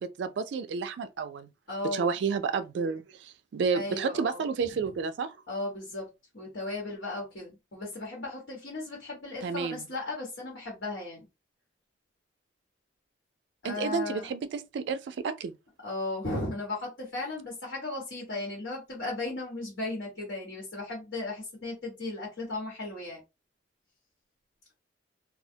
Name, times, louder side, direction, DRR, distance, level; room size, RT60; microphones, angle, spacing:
voice 1, 0.0-1.5 1.9-5.3 9.4-9.9 13.6-15.5, right 5 dB, 70° right, 0.3 m, -31 dB
voice 2, 1.7-2.1 3.7-4.7 5.5-6.1 6.3-11.2 13.6-14.3 15.8-23.2, left 2 dB, 75° left, 1.2 m, -36 dB
2.3 x 2.1 x 2.6 m
head